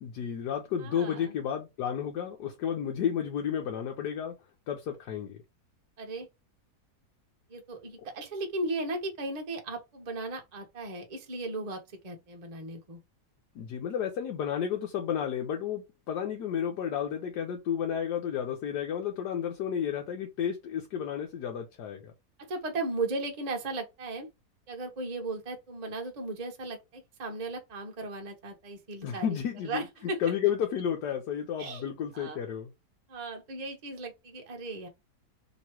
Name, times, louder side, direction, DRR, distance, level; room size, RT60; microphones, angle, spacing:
voice 1, 0.0-4.3 4.7-5.4 13.5-22.1 29.0-29.8 30.2-32.7, left 8 dB, 85° left, 1.3 m, -32 dB
voice 2, 0.8-1.3 6.0-6.3 7.5-13.0 22.4-24.3 24.7-29.4 29.6-30.2 31.6-31.9 32.1-32.4 33.1-34.9, right 2 dB, 30° right, 0.8 m, -36 dB
3.0 x 3.0 x 4.4 m
omnidirectional pair, 1.7 m